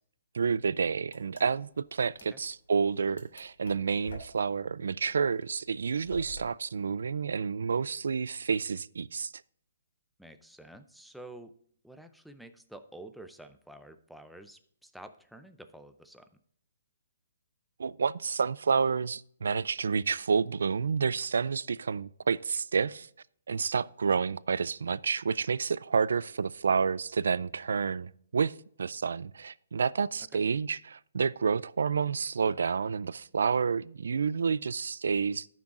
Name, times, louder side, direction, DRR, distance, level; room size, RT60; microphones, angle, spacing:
voice 1, 0.3-9.3 17.8-23.1 23.5-35.5, right 5 dB, 80° right, 0.3 m, -29 dB
sound 1, 1.0-6.4, left 1 dB, 75° left, 2.4 m, -48 dB
voice 2, 10.2-11.5 11.8-16.3 30.3-30.4, right 1 dB, ahead, 0.4 m, -49 dB
14.0 x 6.1 x 2.4 m
hypercardioid pair, 165°, 0 cm